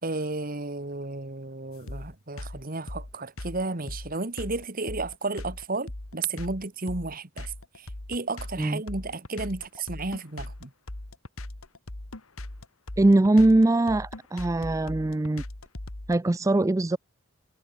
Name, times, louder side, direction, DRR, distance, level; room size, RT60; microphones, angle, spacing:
voice 1, 0.0-10.7, right 3 dB, 40° right, 1.7 m, -33 dB
sound 1, 1.9-16.2, left 1 dB, 85° left, 2.3 m, -39 dB
voice 2, 13.0-15.4 16.1-17.0, right 2 dB, 15° right, 0.4 m, -21 dB
head